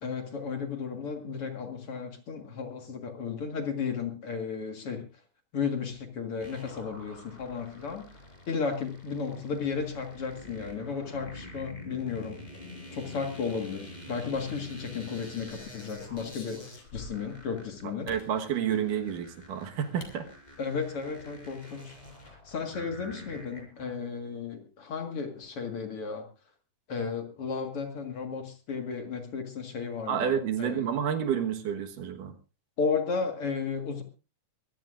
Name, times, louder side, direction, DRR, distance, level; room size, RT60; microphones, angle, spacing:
voice 1, 0.0-5.0 5.5-8.0 8.5-12.4 12.9-18.1 20.6-22.0 22.2-26.3 26.9-30.3 30.6-30.9 32.8-34.0, left 5 dB, 50° left, 4 dB, 2.4 m, -34 dB
sound 1, 6.4-23.9, left 1 dB, 10° left, 5.5 m, -47 dB
sound 2, 15.8-17.4 18.1-18.3 19.4-19.5 20.0-20.2 20.5-20.6 20.9-21.3, left 4 dB, 70° left, 4.2 m, -48 dB
voice 2, 18.1-20.3 30.1-32.3, right 8 dB, 80° right, 6 dB, 3.0 m, -29 dB
23.0 x 16.0 x 2.5 m, 0.33 s
omnidirectional pair, 3.7 m